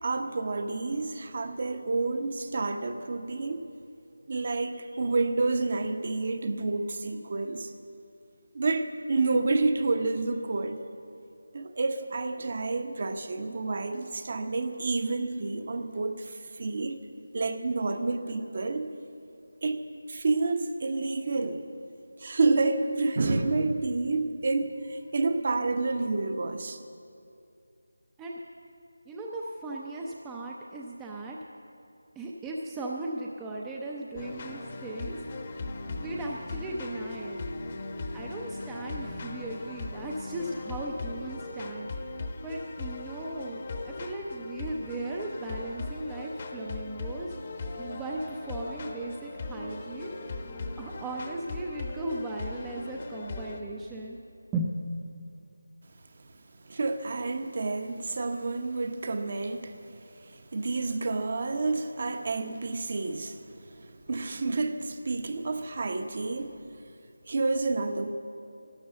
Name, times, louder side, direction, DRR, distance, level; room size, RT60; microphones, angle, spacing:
voice 1, 0.0-3.6 4.3-7.7 8.5-10.8 11.5-17.0 17.3-18.9 19.6-19.8 20.1-21.6 22.2-26.8 56.6-66.6 67.3-68.1, right 3 dB, 40° right, 8 dB, 0.9 m, -29 dB
voice 2, 29.1-31.4 32.2-35.2 35.8-37.4 38.1-42.0 42.4-47.3 47.8-50.1 50.8-54.2 54.5-54.8, right 2 dB, 10° right, -1 dB, 0.5 m, -37 dB
sound 1, 34.2-53.6, left 2 dB, 30° left, 0.9 m, -38 dB
12.5 x 11.0 x 7.7 m, 2.5 s
figure-of-eight pair, 175°, 0 cm